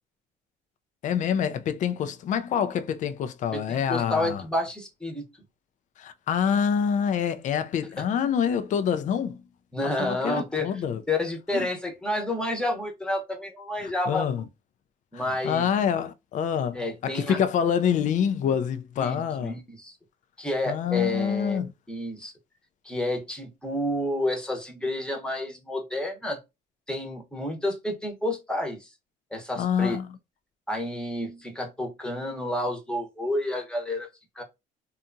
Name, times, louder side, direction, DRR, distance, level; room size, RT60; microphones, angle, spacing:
voice 1, 1.0-4.4 6.0-9.4 9.8-11.0 11.5-11.7 13.8-14.4 15.1-19.6 20.7-21.7 29.6-30.1, left 8 dB, 50° left, 0.4 m, -26 dB
voice 2, 3.5-5.2 9.7-10.7 11.1-14.4 15.1-15.7 16.7-17.4 19.0-19.9 20.4-22.3 22.8-26.4 26.9-28.9 29.3-30.0 30.7-34.1 34.4-34.5, left 1 dB, 5° left, 0.9 m, -30 dB
2.7 x 2.3 x 2.5 m
cardioid pair, 110°, 17 cm